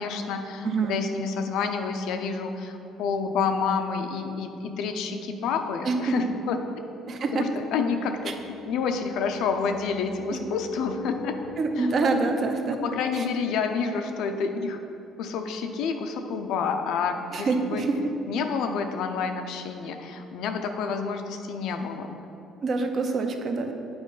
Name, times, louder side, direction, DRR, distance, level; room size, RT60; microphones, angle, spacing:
voice 1, 0.0-6.6 7.3-8.3 8.7-11.4 11.8-11.9 12.8-14.8 15.2-17.8 18.3-22.1, left 5 dB, 70° left, 6 dB, 0.5 m, -29 dB
voice 2, 0.6-1.0 5.8-6.0 7.1-7.5 8.3-8.4 10.3-10.4 11.6-12.8 13.1-13.3 17.3-18.0 22.6-23.7, right 4 dB, 40° right, 5 dB, 0.6 m, -26 dB
sound 1, 6.3-6.4 7.9-14.7, left 5 dB, 15° left, 0.7 m, -44 dB
8.6 x 4.5 x 4.0 m, 2.8 s
cardioid pair, 145°, 0 cm